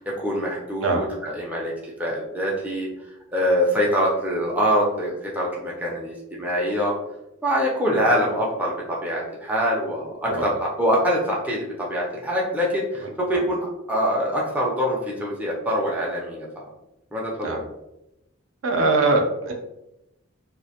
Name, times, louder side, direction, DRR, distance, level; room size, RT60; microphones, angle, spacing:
voice 1, 0.0-1.7 2.0-2.9 3.3-6.9 7.4-13.6 13.9-16.6 17.1-17.6, equal, 5° right, -4 dB, 0.3 m, -24 dB
voice 2, 13.0-13.4 17.4-17.6 18.6-19.5, right 2 dB, 70° right, 1 dB, 0.5 m, -22 dB
2.4 x 2.0 x 2.7 m, 0.90 s
head